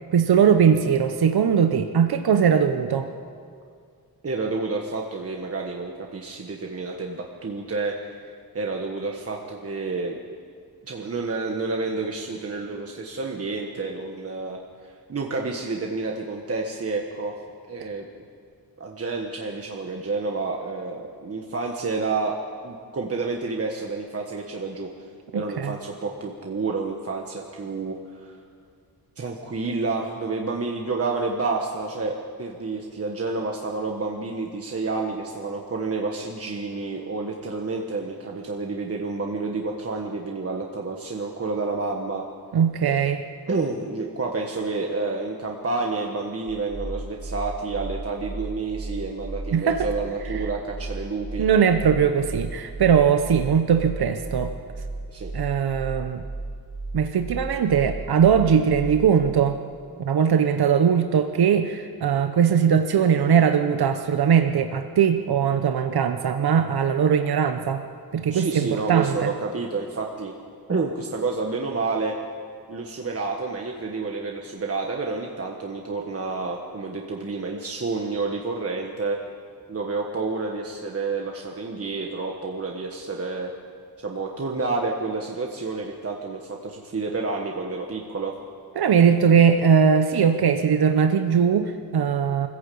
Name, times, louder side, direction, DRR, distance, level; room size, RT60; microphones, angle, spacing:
voice 1, 0.1-3.1 25.3-25.7 42.5-43.3 49.5-49.9 51.4-54.5 55.3-56.2 56.9-59.6 60.0-67.8 68.1-69.3 88.8-92.5, right 7 dB, 80° right, 7 dB, 1.0 m, -20 dB
voice 2, 4.2-10.2 10.8-17.4 17.7-18.1 18.8-22.4 22.6-24.9 25.3-28.4 29.2-42.2 42.9-43.1 43.5-51.5 55.1-55.3 68.3-70.3 70.7-72.2 72.7-79.2 79.7-83.5 84.0-88.4, right 3 dB, 40° right, 0 dB, 1.4 m, -29 dB
sound 1, 46.5-59.3, right 2 dB, 25° right, 1.5 m, -35 dB
25.0 x 15.0 x 8.6 m, 2.2 s
wide cardioid pair, 175°, 37 cm